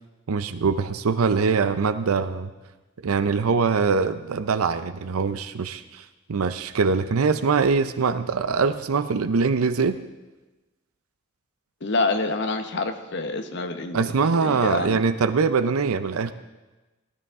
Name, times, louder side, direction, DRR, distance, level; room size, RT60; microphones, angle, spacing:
voice 1, 0.3-2.5 3.0-6.0 6.3-10.0 13.9-16.3, right 5 dB, 85° right, 11 dB, 0.5 m, -23 dB
voice 2, 11.8-14.0 14.4-15.0, left 3 dB, 55° left, 7 dB, 1.0 m, -27 dB
18.5 x 13.0 x 3.6 m, 1.1 s
head